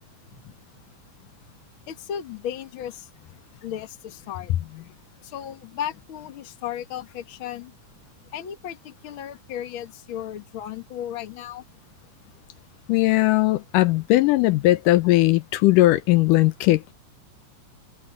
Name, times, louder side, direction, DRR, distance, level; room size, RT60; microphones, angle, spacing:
voice 1, 1.9-3.1 3.6-4.5 5.2-7.8 8.3-11.6, left 10 dB, 50° left, 1.9 m, -35 dB
voice 2, 12.9-16.9, left 17 dB, 80° left, 2.2 m, -19 dB
omnidirectional pair, 3.8 m